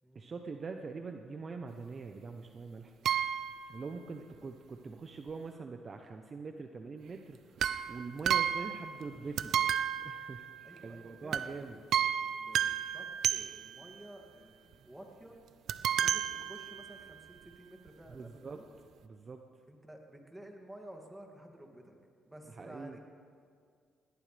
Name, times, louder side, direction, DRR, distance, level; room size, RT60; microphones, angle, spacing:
voice 1, 0.1-2.9 3.7-9.5 10.0-10.5 10.8-11.8 18.1-18.6 19.0-19.4 22.5-23.0, right 4 dB, 40° right, 5 dB, 0.9 m, -43 dB
sound 1, 3.0-3.8 7.6-9.1 9.4-10.9 11.3-11.6 11.9-13.9 15.7-17.1 17.9-18.0 18.1-18.2, right 9 dB, 70° right, 0.5 m, -32 dB
voice 2, 10.6-11.8 12.3-15.4 16.0-18.7 19.7-21.9 22.3-23.0, right 1 dB, 10° right, 1 dB, 2.5 m, -52 dB
21.0 x 17.5 x 3.5 m, 2.1 s
cardioid pair, 90°, 0 cm